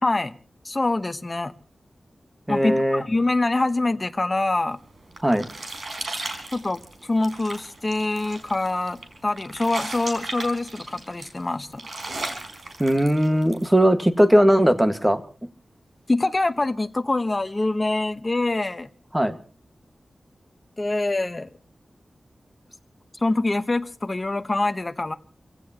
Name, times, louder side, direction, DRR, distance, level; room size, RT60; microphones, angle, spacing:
voice 1, 0.0-0.4 0.6-1.5 2.5-4.8 6.5-11.8 16.1-18.9 20.8-21.5 23.2-25.1, left 2 dB, 30° left, 1.0 m, -25 dB
voice 2, 2.5-3.0 5.2-5.5 12.8-15.2 19.1-19.4, equal, 10° right, 1.7 m, -19 dB
sound 1, 4.8-13.7, right 2 dB, 65° right, 4.4 m, -36 dB
29.0 x 16.5 x 2.9 m
wide cardioid pair, 110°, 0 cm